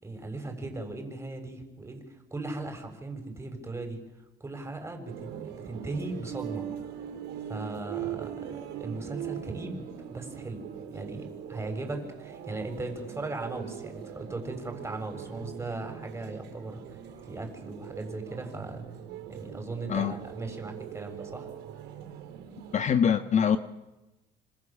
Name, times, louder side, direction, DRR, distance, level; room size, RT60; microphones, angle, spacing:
voice 1, 0.0-4.0 4.4-6.7 7.5-9.8 10.1-10.7 10.9-17.0 17.3-18.8 19.3-21.5, right 2 dB, 15° right, 5 dB, 6.8 m, -38 dB
sound 1, 5.1-22.8, right 10 dB, 90° right, 5.1 m, -41 dB
voice 2, 22.7-23.6, left 7 dB, 45° left, 10 dB, 1.4 m, -23 dB
26.5 x 26.5 x 7.5 m, 1.1 s
cardioid pair, 110°, 17 cm